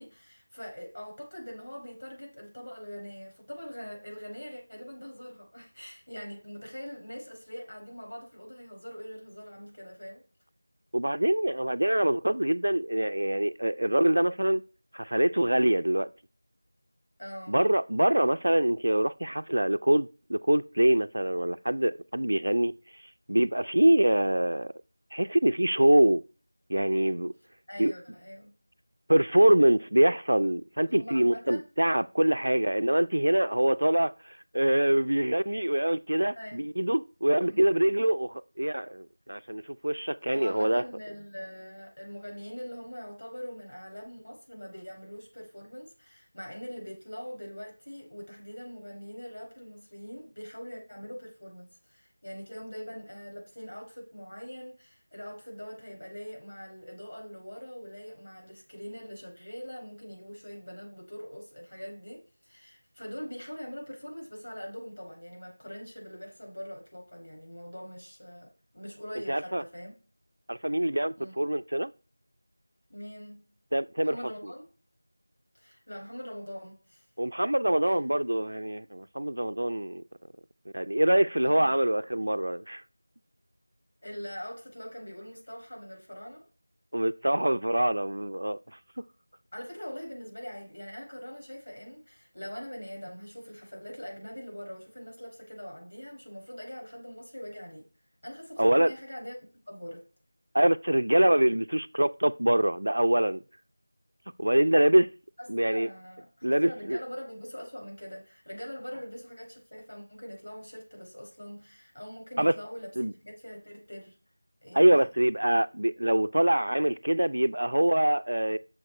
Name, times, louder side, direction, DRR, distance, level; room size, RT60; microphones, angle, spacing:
voice 1, 0.0-10.2 17.2-17.6 27.7-28.6 30.9-31.6 36.4-36.7 37.4-37.6 40.3-69.9 71.1-71.4 72.9-73.4 74.0-74.7 75.5-77.1 77.8-78.0 81.4-81.7 84.0-86.5 89.5-97.9 98.2-100.0 105.4-114.2 114.6-115.1, equal, 75° left, 4.7 m, -43 dB
voice 2, 10.9-14.6 14.9-16.1 17.5-22.7 23.3-24.7 25.1-26.2 26.7-27.3 27.8-27.9 29.1-40.8 69.3-69.6 70.5-71.9 73.7-74.2 77.2-80.0 80.7-82.8 86.9-88.6 89.0-89.1 98.6-98.9 100.5-103.4 104.4-105.1 105.5-105.9 106.4-107.0 112.4-112.5 113.0-113.1 114.7-118.6, right 1 dB, 85° right, 0.5 m, -24 dB
8.6 x 6.4 x 4.3 m
figure-of-eight pair, 180°, 0 cm